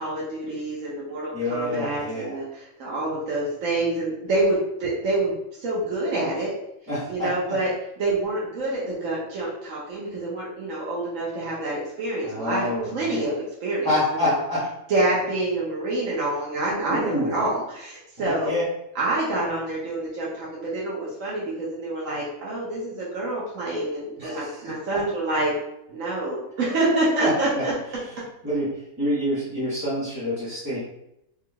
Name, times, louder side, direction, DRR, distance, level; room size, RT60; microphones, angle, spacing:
voice 1, 0.0-5.3 5.6-6.5 7.1-13.3 13.6-14.4 14.9-18.6 18.9-25.5 25.9-27.7, right 2 dB, 70° right, -6 dB, 1.2 m, -27 dB
voice 2, 1.3-2.4 6.9-7.3 12.2-13.4 13.8-14.7 16.9-17.4 18.2-18.6 24.2-25.0 27.2-27.6 28.4-30.8, left 1 dB, 15° right, -12 dB, 1.4 m, -27 dB
3.5 x 3.5 x 2.2 m, 0.81 s
omnidirectional pair, 1.4 m